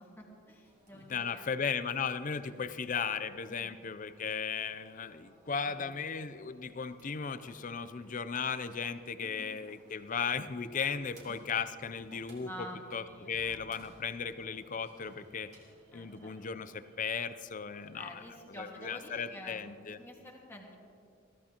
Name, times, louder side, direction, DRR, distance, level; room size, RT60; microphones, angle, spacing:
voice 1, 0.0-1.5 3.5-3.8 5.7-5.9 9.2-9.5 11.3-11.4 12.4-13.9 15.9-16.3 17.9-20.8, left 1 dB, 10° left, -2 dB, 1.8 m, -49 dB
sound 1, 0.6-19.6, right 1 dB, 35° right, 3.1 m, -63 dB
voice 2, 0.9-15.5 15.9-18.2 18.6-20.0, left 6 dB, 40° left, 12 dB, 0.5 m, -36 dB
21.5 x 15.0 x 2.9 m, 2.4 s
head